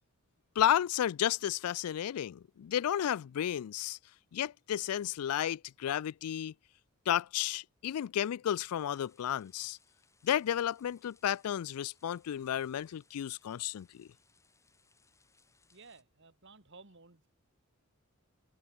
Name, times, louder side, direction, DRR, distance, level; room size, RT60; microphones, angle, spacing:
voice 1, 0.6-4.0 4.3-6.5 7.1-9.8 10.2-14.1, left 10 dB, 85° left, 0.3 m, -32 dB
sound 1, 8.4-16.0, left 4 dB, 15° left, 6.3 m, -69 dB
voice 2, 15.7-17.3, right 4 dB, 55° right, 2.2 m, -56 dB
head